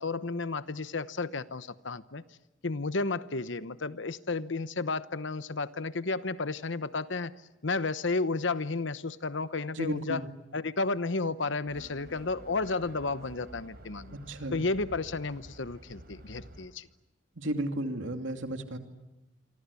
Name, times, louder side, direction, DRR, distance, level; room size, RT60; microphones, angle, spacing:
voice 1, 0.0-2.2 2.6-7.3 7.6-10.2 10.5-14.2 14.5-16.9, left 3 dB, 75° left, 14 dB, 1.0 m, -32 dB
voice 2, 9.7-10.3 14.1-14.6 17.4-18.8, right 1 dB, 85° right, 5 dB, 2.6 m, -34 dB
sound 1, 11.7-16.7, right 1 dB, 55° right, 3.9 m, -50 dB
28.0 x 24.5 x 8.4 m, 1.0 s
head